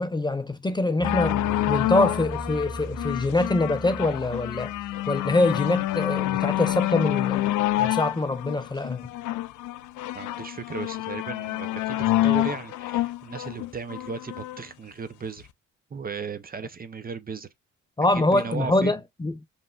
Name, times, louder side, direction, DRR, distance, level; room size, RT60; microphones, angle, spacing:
voice 1, 0.0-1.4 1.7-4.7 5.1-7.4 7.8-9.1 18.0-19.3, left 2 dB, 15° left, 0.5 m, -24 dB
sound 1, 1.0-14.6 15.4-15.5, left 15 dB, 85° left, 0.5 m, -27 dB
sound 2, 1.0-10.3 10.8-10.9, right 3 dB, 75° right, 1.7 m, -42 dB
voice 2, 10.1-15.5 15.9-17.5 18.1-18.9, right 5 dB, 30° right, 0.6 m, -36 dB
5.2 x 3.2 x 2.4 m
cardioid pair, 90°, 30 cm